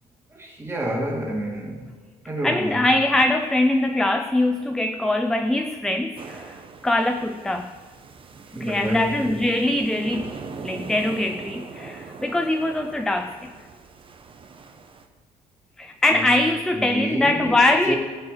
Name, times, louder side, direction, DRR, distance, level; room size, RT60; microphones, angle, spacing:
voice 1, 0.3-1.9 2.3-2.8 8.5-9.4 16.1-16.3 16.7-17.6 17.9-18.0, right 1 dB, 15° right, -3 dB, 2.4 m, -29 dB
voice 2, 2.4-7.8 8.6-10.3 10.6-13.5 15.8-17.9, left 2 dB, 5° left, 7 dB, 0.4 m, -22 dB
sound 1, 6.2-15.1, right 5 dB, 30° right, 0.8 m, -41 dB
18.5 x 6.9 x 3.3 m, 1.5 s
cardioid pair, 110°, 17 cm